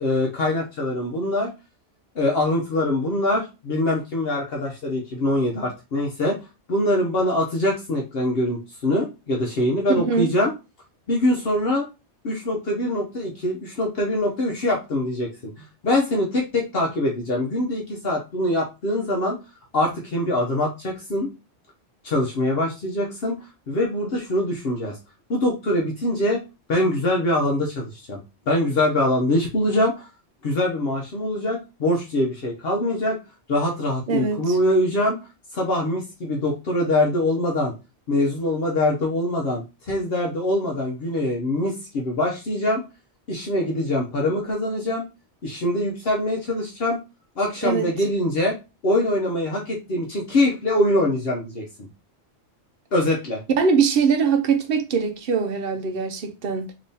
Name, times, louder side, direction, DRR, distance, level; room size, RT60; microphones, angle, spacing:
voice 1, 0.0-1.5 2.1-6.4 6.7-10.5 11.1-11.9 12.2-19.4 19.7-21.3 22.0-25.0 25.3-26.4 26.7-28.2 28.5-30.1 30.4-33.2 33.5-35.2 35.5-37.7 38.1-42.8 43.3-45.1 45.4-47.0 47.4-48.6 48.8-51.9 52.9-53.4, left 1 dB, 60° left, 0.9 m, -23 dB
voice 2, 10.0-10.3 34.1-34.6 47.6-47.9 53.6-56.7, right 5 dB, 60° right, 0.8 m, -22 dB
3.4 x 2.9 x 2.7 m
omnidirectional pair, 1.2 m